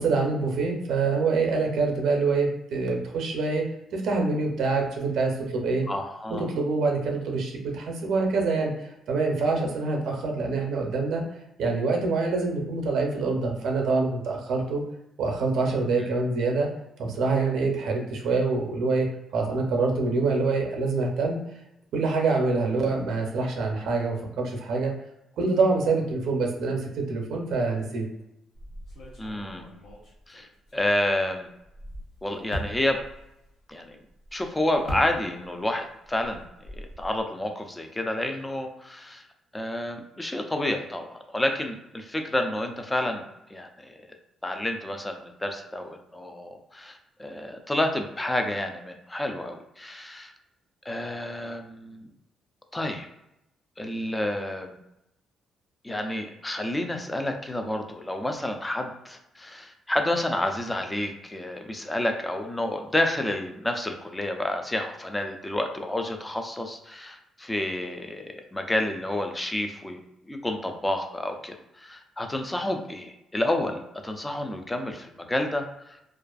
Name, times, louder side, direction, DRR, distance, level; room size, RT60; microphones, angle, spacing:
voice 1, 0.0-3.6 3.9-5.9 6.4-8.7 9.1-11.2 11.6-14.8 15.2-16.7 17.0-19.1 19.3-21.4 21.9-24.9 25.4-28.1, right 3 dB, 75° right, 1 dB, 0.5 m, -25 dB
voice 2, 5.9-6.5 16.0-16.1 29.2-29.7 30.3-31.5 32.2-33.0 33.7-34.0 34.3-39.2 39.5-43.2 43.5-44.0 44.4-50.3 50.9-52.1 52.7-53.1 53.8-54.8 55.8-70.0 70.2-76.0, left 1 dB, 15° left, 4 dB, 0.4 m, -30 dB
sound 1, 28.5-31.2 31.6-35.7 35.9-37.2, equal, 75° left, 0.7 m, -40 dB
2.4 x 2.4 x 2.3 m, 0.84 s
cardioid pair, 90°, 0 cm